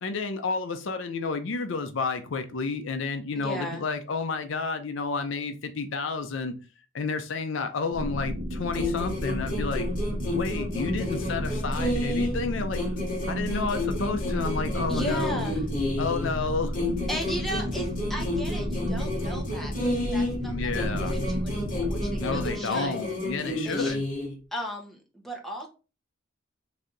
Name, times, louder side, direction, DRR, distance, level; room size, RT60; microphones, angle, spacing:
voice 1, 0.0-6.6 6.9-9.9 10.3-12.8 13.3-15.5 16.0-16.7 20.4-21.2 22.2-24.0, left 4 dB, 65° left, 0.5 m, -31 dB
voice 2, 3.4-3.8 14.9-15.6 17.1-23.0 23.6-23.9 24.5-25.7, equal, ahead, 0.9 m, -36 dB
sound 1, 7.9-22.5, equal, 45° right, 0.9 m, -32 dB
sound 2, 8.7-12.4 12.7-16.4 16.7-20.4 20.7-24.4, left 1 dB, 40° left, 1.1 m, -31 dB
3.3 x 2.7 x 3.8 m
head